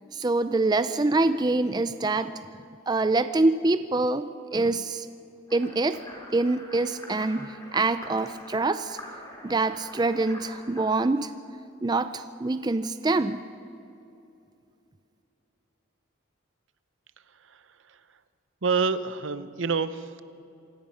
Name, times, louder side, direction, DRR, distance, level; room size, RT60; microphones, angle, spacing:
voice 1, 0.1-2.3 2.9-5.1 5.5-6.0 6.3-9.0 9.4-11.3 11.8-13.4, right 2 dB, 20° right, 11 dB, 0.4 m, -25 dB
sound 1, 5.5-10.9, left 1 dB, 20° left, 3.7 m, -45 dB
voice 2, 17.3-18.0 18.6-20.2, right 5 dB, 70° right, 13 dB, 0.8 m, -28 dB
26.5 x 18.0 x 5.7 m, 2.7 s
head